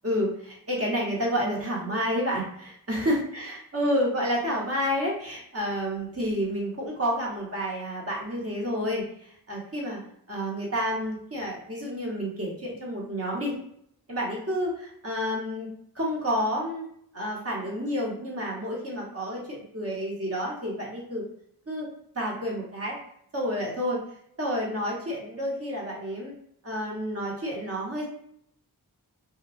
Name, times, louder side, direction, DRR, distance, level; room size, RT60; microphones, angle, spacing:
voice 1, 0.0-10.0 10.3-13.5 14.1-15.7 15.9-16.9 17.1-21.2 21.7-21.9 22.1-23.0 23.3-24.0 24.4-26.3 26.6-28.0, equal, 40° right, -3 dB, 0.9 m, -29 dB
2.9 x 2.2 x 2.4 m, 0.70 s
wide cardioid pair, 80°, 37 cm